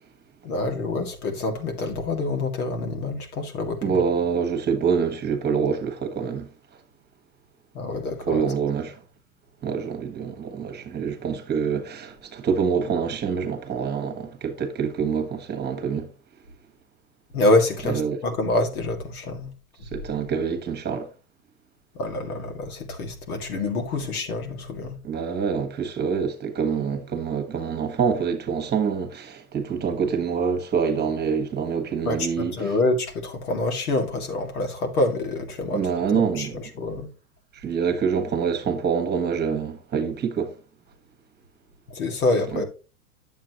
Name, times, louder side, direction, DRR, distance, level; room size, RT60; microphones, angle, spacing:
voice 1, 0.4-4.0 7.7-8.4 17.3-19.5 21.9-25.0 32.0-35.8 36.1-37.1 41.9-42.6, left 2 dB, 80° left, 2.2 m, -26 dB
voice 2, 3.8-6.5 8.2-9.0 9.6-16.1 17.9-18.2 19.9-21.1 25.0-32.5 35.7-36.6 37.5-40.5 42.5-42.6, right 6 dB, 20° right, 1.5 m, -26 dB
9.1 x 7.3 x 3.0 m
hypercardioid pair, 110°, 44 cm